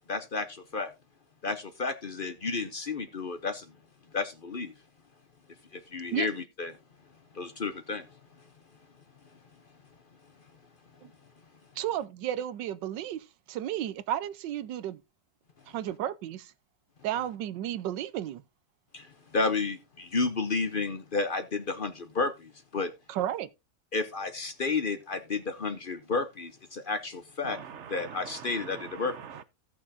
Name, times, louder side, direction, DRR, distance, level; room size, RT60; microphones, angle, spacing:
voice 1, 0.1-0.9 1.4-3.7 4.1-4.7 5.7-6.7 7.3-8.1 18.9-19.1 19.3-22.9 23.9-27.6 27.9-29.2, left 3 dB, 45° left, 0.7 m, -31 dB
voice 2, 11.8-15.0 15.7-16.5 17.0-18.4 23.1-23.5, right 11 dB, 85° right, 1.4 m, -33 dB
voice 3, 27.4-29.4, right 8 dB, 60° right, 0.7 m, -43 dB
16.5 x 6.0 x 2.7 m
omnidirectional pair, 1.9 m